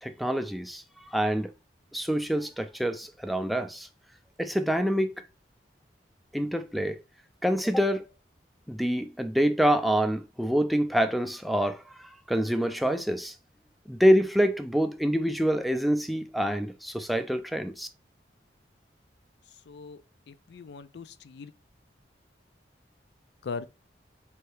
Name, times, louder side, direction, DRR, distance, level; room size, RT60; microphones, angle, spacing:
voice 1, 0.0-1.5 1.9-3.9 4.4-5.2 6.3-7.0 7.4-8.1 8.7-13.4 13.9-17.9, equal, ahead, 0.3 m, -26 dB
voice 2, 19.7-20.0 20.3-21.5 23.4-23.7, left 5 dB, 70° left, 0.4 m, -39 dB
4.4 x 2.7 x 3.3 m
head